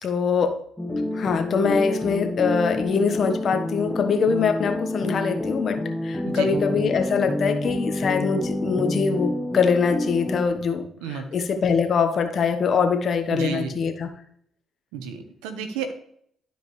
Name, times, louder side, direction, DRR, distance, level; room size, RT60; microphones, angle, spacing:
voice 1, 0.0-0.6 1.1-14.1, left 5 dB, 55° left, 7 dB, 1.2 m, -23 dB
sound 1, 0.8-10.4, left 1 dB, 10° left, 1.2 m, -28 dB
voice 2, 6.2-6.6 11.0-11.3 13.3-13.8 14.9-15.9, right 7 dB, 90° right, 7 dB, 1.1 m, -31 dB
12.0 x 5.0 x 3.2 m, 0.66 s
supercardioid pair, 60°, 0 cm